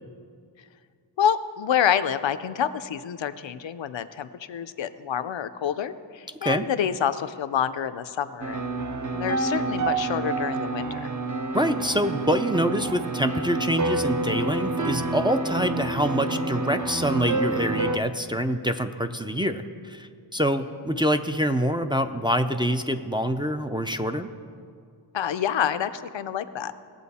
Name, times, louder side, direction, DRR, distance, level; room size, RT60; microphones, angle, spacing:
voice 1, 1.2-8.7 9.1-11.1 20.9-21.0 25.1-26.7, left 9 dB, 80° left, 12 dB, 0.6 m, -27 dB
sound 1, 8.4-18.0, right 2 dB, 40° right, 0.7 m, -28 dB
voice 2, 11.5-24.3, equal, 10° right, 6 dB, 0.4 m, -25 dB
18.5 x 7.6 x 4.2 m, 2.2 s
wide cardioid pair, 85°, 45 cm